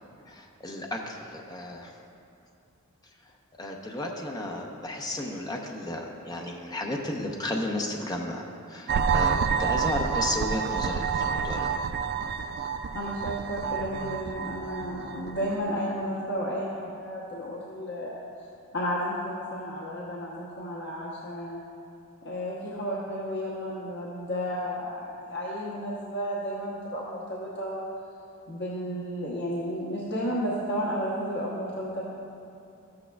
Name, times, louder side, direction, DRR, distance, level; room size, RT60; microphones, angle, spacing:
voice 1, 0.3-1.9 3.6-11.7, left 1 dB, 20° left, 1 dB, 0.7 m, -33 dB
sound 1, 8.9-15.6, right 6 dB, 50° right, 0.3 m, -29 dB
voice 2, 12.9-18.2 18.7-21.6 22.2-27.8 28.5-32.0, equal, 55° left, -6 dB, 1.0 m, -32 dB
13.0 x 8.6 x 2.3 m, 2.7 s
head